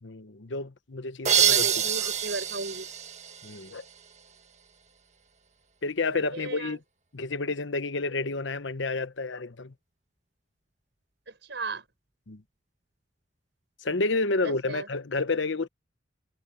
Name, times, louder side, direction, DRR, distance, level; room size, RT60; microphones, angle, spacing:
voice 1, 0.0-1.7 2.0-2.1 3.4-3.8 5.8-6.8 7.1-9.7 12.3-12.4 13.8-15.7, left 3 dB, 70° left, 1.0 m, -30 dB
sound 1, 1.2-4.0, right 8 dB, 35° right, 1.4 m, -26 dB
voice 2, 1.3-2.9 6.3-6.8 11.5-11.8 14.4-14.9, right 3 dB, 60° right, 6.1 m, -35 dB
head